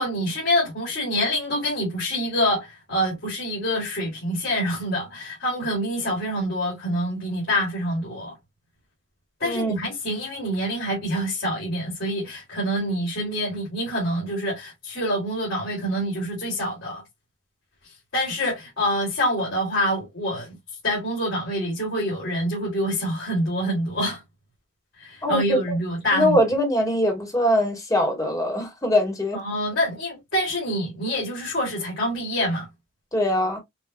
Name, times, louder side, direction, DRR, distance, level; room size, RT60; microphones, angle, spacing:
voice 1, 0.0-8.3 9.4-17.0 17.8-20.5 20.8-24.2 25.0-26.4 29.3-32.7, equal, 70° left, 2.4 m, -26 dB
voice 2, 9.4-9.7 25.2-25.6 26.1-29.4 33.1-33.6, equal, 15° left, 1.4 m, -22 dB
5.7 x 2.5 x 2.3 m
head